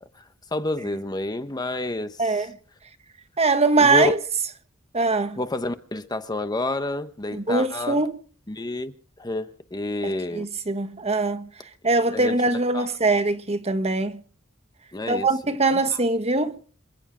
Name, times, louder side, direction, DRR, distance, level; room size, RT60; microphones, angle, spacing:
voice 1, 0.0-2.5 3.8-4.1 5.4-8.0 8.5-10.5 12.1-12.4 12.7-12.9 14.9-15.3 15.9-16.0, left 2 dB, 20° left, 0.9 m, -29 dB
voice 2, 2.2-2.5 3.4-4.2 4.9-5.4 7.3-8.2 10.0-11.5 11.8-14.2 15.1-16.6, right 3 dB, 30° right, 1.5 m, -22 dB
27.5 x 9.9 x 5.0 m
head